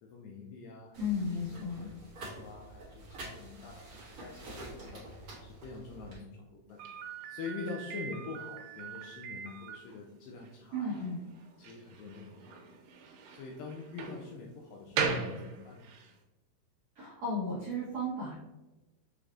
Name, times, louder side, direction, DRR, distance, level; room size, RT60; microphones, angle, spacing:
voice 1, 0.0-5.0 5.4-6.8 7.3-11.0 11.6-12.8 13.3-15.9, left 4 dB, 90° left, -1 dB, 2.0 m, -45 dB
sound 1, 0.9-6.2, right 2 dB, 55° right, 1.4 m, -48 dB
voice 2, 1.0-1.9 10.7-11.2 16.9-18.3, left 2 dB, 70° right, -9 dB, 1.6 m, -34 dB
Slam, 6.8-16.1, right 5 dB, 90° right, 2.7 m, -40 dB
6.7 x 3.2 x 2.4 m, 1.0 s
omnidirectional pair, 4.7 m